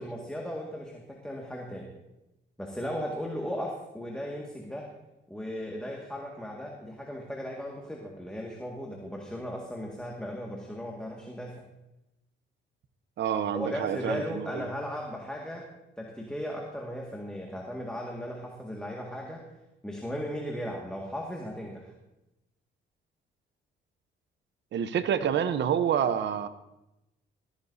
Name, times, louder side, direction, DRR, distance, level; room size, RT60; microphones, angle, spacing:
voice 1, 0.0-1.9 2.6-4.9 5.3-11.6 13.5-15.7 16.0-19.4 19.8-21.9, equal, 5° left, -1 dB, 1.9 m, -36 dB
voice 2, 13.2-14.6 24.7-26.5, right 8 dB, 65° right, 11 dB, 0.9 m, -28 dB
15.0 x 14.5 x 2.8 m, 0.94 s
cardioid pair, 90°, 20 cm